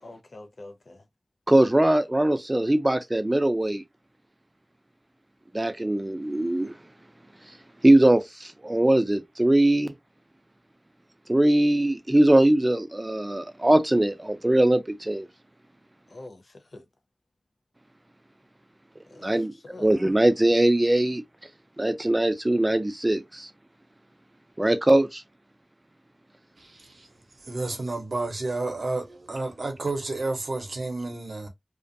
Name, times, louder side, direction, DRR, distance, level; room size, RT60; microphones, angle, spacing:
voice 1, 0.0-1.0 16.1-16.8 19.1-19.9, left 2 dB, 80° left, 0.6 m, -45 dB
voice 2, 1.5-3.8 5.5-6.7 7.8-9.9 11.3-15.3 19.2-19.5 19.8-21.2 21.8-23.5 24.6-25.2, right 1 dB, 30° right, 0.5 m, -21 dB
voice 3, 26.6-27.1 27.4-31.5, right 2 dB, 85° right, 0.7 m, -31 dB
2.4 x 2.2 x 2.5 m
wide cardioid pair, 40°, 0 cm